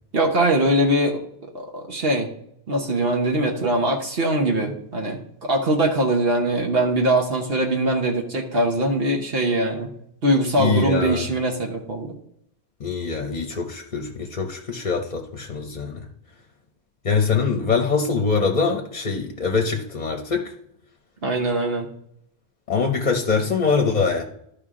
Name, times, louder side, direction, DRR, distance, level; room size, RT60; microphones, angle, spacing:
voice 1, 0.1-1.2 1.5-2.3 2.7-9.9 10.2-12.1 21.2-21.9, right 1 dB, 65° right, 1 dB, 1.3 m, -22 dB
voice 2, 10.6-11.2 12.8-16.1 17.0-20.5 22.7-24.2, left 5 dB, 45° left, 4 dB, 0.8 m, -23 dB
12.5 x 5.0 x 3.7 m, 0.74 s
omnidirectional pair, 1.1 m